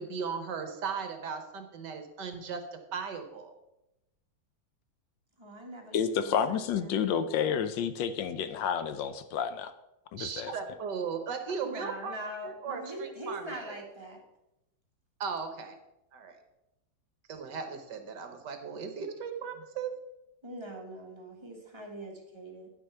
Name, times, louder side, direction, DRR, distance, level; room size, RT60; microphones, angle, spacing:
voice 1, 0.0-3.5 10.2-12.2 12.4-13.8 15.2-15.7 16.1-16.4 17.3-19.9, right 6 dB, 65° right, 7 dB, 1.5 m, -37 dB
voice 2, 5.4-7.1 11.6-14.2 20.4-22.7, right 1 dB, 15° right, 0 dB, 1.4 m, -42 dB
voice 3, 5.9-9.7 10.1-10.5, left 7 dB, 75° left, 12 dB, 1.2 m, -30 dB
9.6 x 6.3 x 5.5 m, 0.91 s
omnidirectional pair, 2.1 m